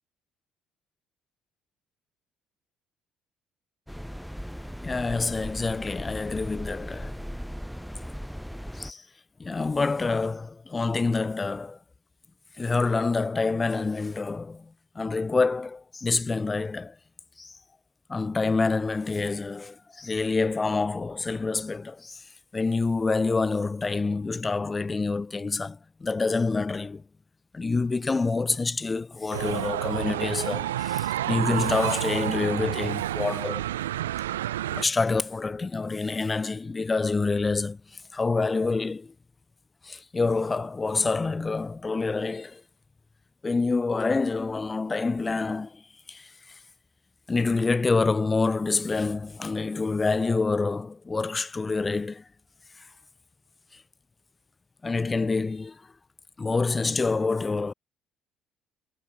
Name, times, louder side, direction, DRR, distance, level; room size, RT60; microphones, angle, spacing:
sound 1, 3.9-8.9, equal, ahead, 5.5 m, -37 dB
voice 1, 4.8-7.1 8.7-9.1 9.4-11.8 12.6-17.0 17.4-17.6 18.1-22.2 22.5-27.0 27.5-33.7 34.7-39.1 39.8-42.6 43.4-45.8 46.1-46.6 47.3-52.2 53.7-53.8 54.8-55.9 56.4-57.7, left 3 dB, 25° left, 0.9 m, -27 dB
sound 2, 29.3-34.8, right 13 dB, 80° right, 0.6 m, -29 dB
figure-of-eight pair, 50°, 0 cm